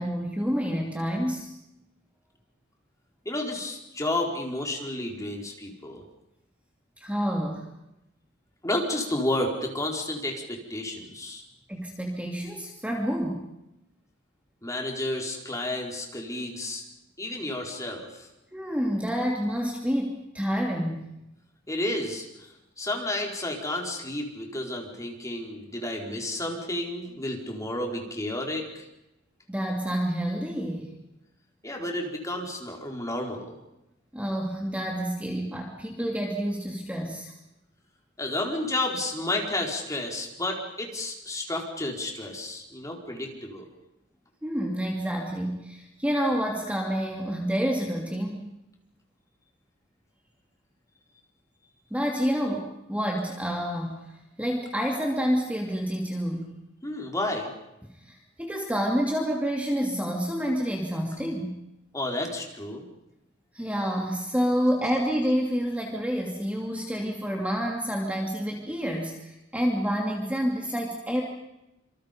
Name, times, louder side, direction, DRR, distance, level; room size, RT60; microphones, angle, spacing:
voice 1, 0.0-1.5 7.0-7.7 11.7-13.5 18.5-21.1 29.5-31.0 34.1-37.3 44.4-48.5 51.9-56.6 57.8-61.6 63.5-71.2, equal, 5° right, 0 dB, 2.8 m, -28 dB
voice 2, 3.2-6.0 8.6-11.4 14.6-16.8 17.2-18.3 21.7-28.8 31.6-33.6 38.2-43.7 56.8-57.5 61.9-62.9, left 1 dB, 15° left, 1 dB, 4.5 m, -31 dB
27.0 x 26.5 x 5.3 m, 0.90 s
head